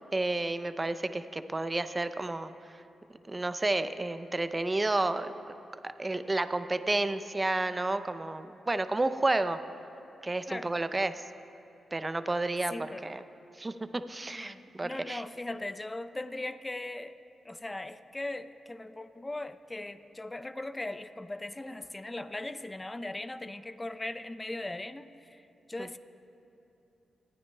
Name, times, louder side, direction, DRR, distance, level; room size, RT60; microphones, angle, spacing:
voice 1, 0.1-2.5 3.3-5.3 5.8-9.6 10.2-11.2 11.9-12.7 13.0-13.2 13.6-15.2, right 2 dB, 25° right, 11 dB, 0.5 m, -31 dB
voice 2, 12.7-13.0 14.3-17.2 17.4-25.4 25.7-26.0, left 2 dB, 25° left, 12 dB, 0.5 m, -39 dB
25.0 x 9.7 x 2.2 m, 2.9 s
supercardioid pair, 50°, 0 cm